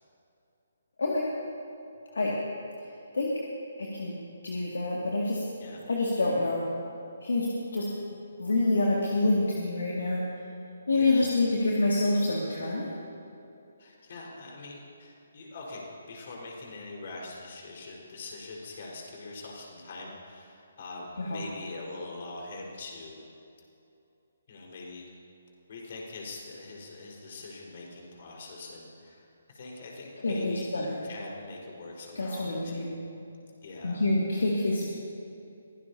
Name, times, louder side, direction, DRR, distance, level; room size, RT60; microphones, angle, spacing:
voice 1, 3.8-4.2 4.4-5.4 5.9-6.6 7.2-10.2 10.9-13.0 21.2-21.4 30.2-31.0 32.2-32.9 33.8-34.9, left 2 dB, 65° left, -3 dB, 2.2 m, -27 dB
voice 2, 10.9-11.3 13.8-23.2 24.5-25.0 25.7-32.9 33.6-34.0, left 3 dB, 45° left, -2 dB, 4.5 m, -43 dB
23.5 x 17.0 x 2.8 m, 2.7 s
figure-of-eight pair, 140°, 0 cm